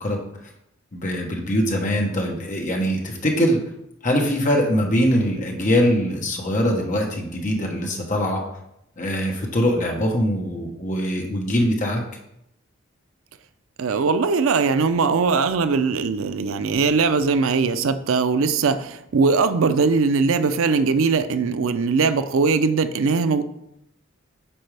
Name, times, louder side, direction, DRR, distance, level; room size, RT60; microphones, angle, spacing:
voice 1, 0.9-3.6 4.0-8.4 9.0-12.0, equal, 35° left, 1 dB, 1.1 m, -22 dB
voice 2, 13.8-23.4, right 4 dB, 75° right, 11 dB, 0.4 m, -20 dB
8.6 x 4.3 x 3.3 m, 0.81 s
head